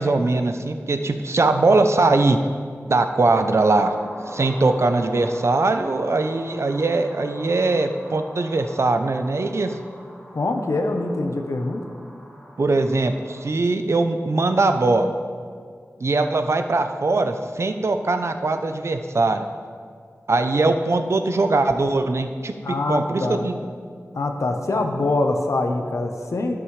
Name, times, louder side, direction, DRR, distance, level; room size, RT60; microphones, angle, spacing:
voice 1, 0.0-2.4 2.9-3.9 4.3-9.7 12.6-15.1 16.0-19.5 20.3-22.5 22.9-23.5, right 3 dB, 60° right, 7 dB, 0.6 m, -21 dB
sound 1, 3.6-13.4, equal, 25° left, 2.3 m, -42 dB
voice 2, 10.3-11.8 22.6-23.5 24.1-26.6, left 2 dB, 75° left, 4 dB, 0.9 m, -24 dB
17.0 x 6.0 x 3.2 m, 2.1 s
wide cardioid pair, 65°, 5 cm